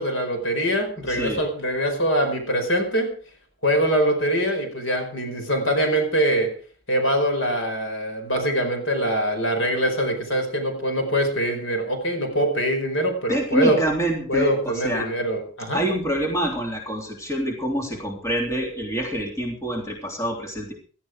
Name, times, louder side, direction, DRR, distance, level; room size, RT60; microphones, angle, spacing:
voice 1, 0.0-3.1 3.6-6.5 6.9-13.8 14.3-15.8, equal, 65° left, 5 dB, 4.8 m, -23 dB
voice 2, 1.1-1.4 13.3-15.1 15.7-20.7, right 1 dB, 15° left, 1 dB, 3.2 m, -26 dB
17.5 x 12.5 x 4.8 m, 0.43 s
head